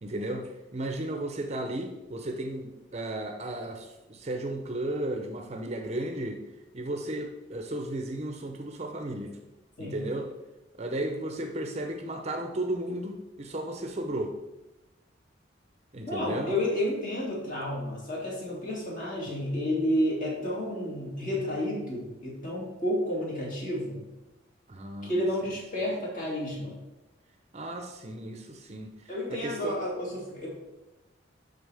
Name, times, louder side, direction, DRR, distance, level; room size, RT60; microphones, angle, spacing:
voice 1, 0.0-6.4 6.7-9.4 9.8-10.3 10.8-14.4 15.9-16.5 24.7-25.2 27.5-29.8, right 1 dB, 35° right, 4 dB, 0.6 m, -34 dB
voice 2, 16.0-24.0 25.0-26.7 29.1-30.5, left 1 dB, 45° left, -4 dB, 2.5 m, -31 dB
12.0 x 4.0 x 3.4 m, 1.0 s
head